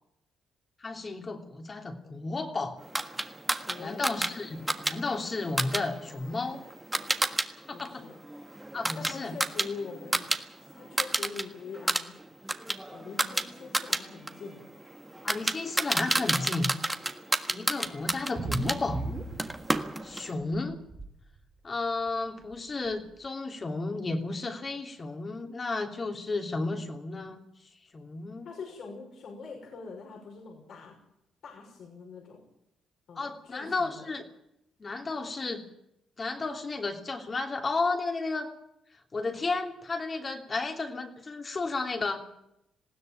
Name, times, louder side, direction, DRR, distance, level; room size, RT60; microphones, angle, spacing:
voice 1, 0.8-2.8 3.8-6.6 7.6-8.0 8.7-9.3 15.2-16.7 17.5-19.0 20.0-20.8 21.6-28.5 33.1-34.3 34.8-35.6 36.2-38.5 39.1-42.3, left 3 dB, 35° left, 4 dB, 3.0 m, -33 dB
sound 1, 2.9-7.5 7.8-10.4 10.7-11.4 11.7-18.8 19.4-20.3, right 1 dB, 10° right, 1.5 m, -31 dB
voice 2, 3.6-4.2 7.7-8.1 9.0-10.3 10.6-12.1 12.9-14.6 28.4-31.0 31.4-32.5 33.1-34.1, left 4 dB, 65° left, 0 dB, 5.7 m, -43 dB
sound 2, 18.1-20.1 20.4-21.1 22.1-22.2 22.5-22.6 22.9-23.0, right 3 dB, 30° right, 2.9 m, -36 dB
20.0 x 15.5 x 9.1 m, 0.82 s
cardioid pair, 90°, 0 cm